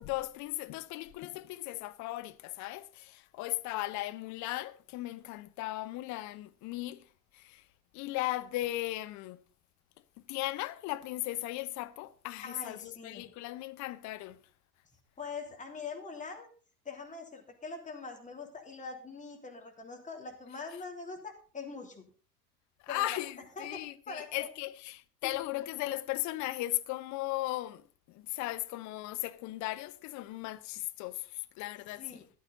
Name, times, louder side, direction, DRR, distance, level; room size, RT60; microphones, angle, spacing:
voice 1, 0.0-7.7 7.9-9.4 10.3-14.4 22.8-32.3, left 17 dB, 35° left, 0.9 m, -37 dB
voice 2, 12.4-13.2 15.2-16.5 16.8-22.0 22.9-23.2 23.6-24.5 25.2-25.3 32.0-32.2, left 4 dB, 15° left, 3.1 m, -43 dB
14.0 x 11.5 x 4.0 m
figure-of-eight pair, 80°, 48 cm